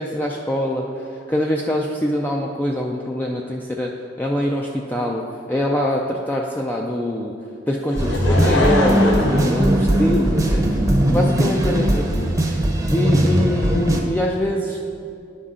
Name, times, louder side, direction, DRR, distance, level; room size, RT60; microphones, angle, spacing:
voice 1, 0.0-7.3 7.7-10.8 11.1-12.3 12.9-14.8, left 1 dB, 10° left, -1 dB, 0.3 m, -24 dB
Laughter / Crowd, 7.9-10.5 11.2-11.3, left 1 dB, 90° left, 0.9 m, -23 dB
sound 1, 8.0-14.0, right 1 dB, 20° right, 0.7 m, -19 dB
10.5 x 5.5 x 3.7 m, 2.6 s
head